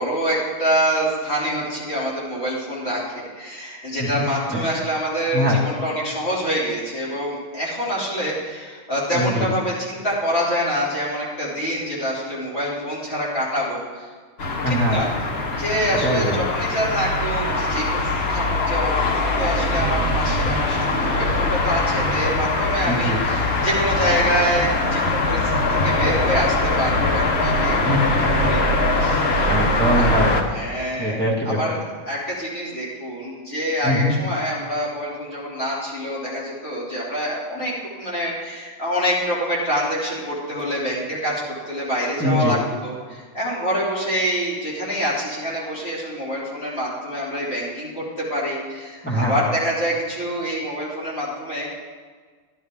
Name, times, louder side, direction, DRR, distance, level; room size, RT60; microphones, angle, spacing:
voice 1, 0.0-14.1 14.6-15.1 15.6-29.3 29.9-30.1 30.5-31.8 32.0-51.7, equal, 30° left, -7 dB, 3.2 m, -26 dB
voice 2, 9.1-9.5 14.6-15.0 16.0-16.4 22.9-23.2 27.8-28.0 29.5-30.4 31.0-31.6 33.8-34.1 42.2-42.6 49.0-49.3, equal, 5° left, -4 dB, 1.7 m, -22 dB
sound 1, 14.4-30.4, left 2 dB, 45° left, 0.8 m, -22 dB
12.5 x 10.5 x 3.6 m, 1.5 s
omnidirectional pair, 2.4 m